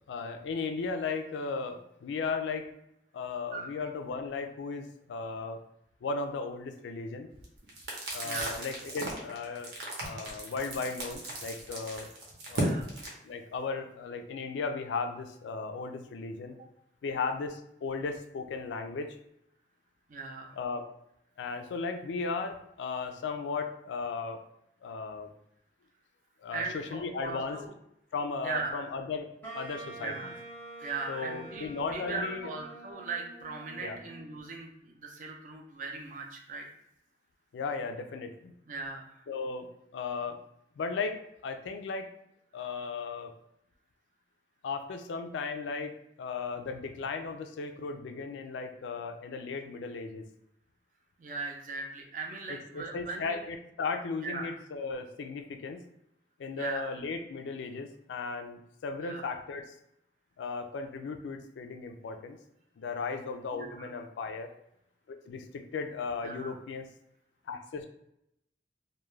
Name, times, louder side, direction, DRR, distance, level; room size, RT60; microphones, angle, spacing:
voice 1, 0.1-2.7 3.1-5.6 6.0-7.3 8.1-9.7 10.0-12.1 12.5-12.7 13.2-16.6 17.0-19.2 20.6-20.9 21.4-24.4 24.8-25.3 26.4-27.6 28.1-30.1 31.1-32.5 33.8-34.0 37.5-38.5 39.3-39.7 39.9-40.4 40.8-42.1 42.5-43.3 44.6-45.9 46.2-50.2 52.5-55.8 56.4-59.7 60.4-62.4 62.8-64.5 65.1-66.9 67.5-67.9, left 4 dB, 85° left, 6 dB, 0.3 m, -36 dB
sound 1, 7.3-13.1, right 2 dB, 70° right, 0.7 m, -37 dB
voice 2, 8.2-8.6 12.5-12.9 20.1-20.6 26.5-27.7 28.4-28.8 30.0-30.3 30.8-36.7 38.7-39.2 51.2-53.4 54.2-54.5 56.6-56.9 59.0-59.3 63.5-63.9 66.2-66.6, right 4 dB, 45° right, 2 dB, 0.4 m, -39 dB
Wind instrument woodwind instrument, 29.4-34.4, right 2 dB, 10° left, 0.6 m, -46 dB
2.3 x 2.1 x 3.1 m, 0.80 s
head